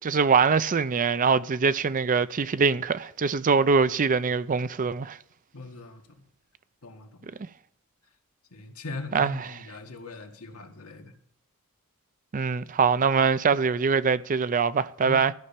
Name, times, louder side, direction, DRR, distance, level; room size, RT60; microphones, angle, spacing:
voice 1, 0.1-5.2 9.1-9.5 12.3-15.3, right 5 dB, 35° right, 0.4 m, -23 dB
voice 2, 5.5-6.0 6.8-7.3 8.5-11.1 15.0-15.3, left 3 dB, 70° left, 1.9 m, -40 dB
14.0 x 5.5 x 8.7 m
head